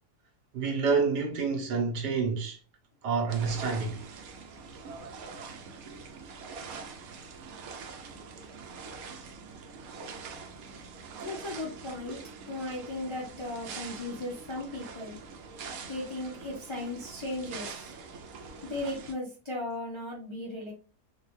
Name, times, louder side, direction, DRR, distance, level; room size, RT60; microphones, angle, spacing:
voice 1, 0.5-2.6 3.0-4.0 9.2-9.3 18.1-18.2, right 5 dB, 90° right, 1.5 m, -28 dB
sound 1, 3.3-19.1, right 5 dB, 70° right, 1.0 m, -44 dB
voice 2, 11.2-12.2 12.5-15.2 15.9-17.9 18.6-20.7, left 2 dB, 35° left, 0.4 m, -36 dB
3.9 x 2.3 x 3.0 m
omnidirectional pair, 1.7 m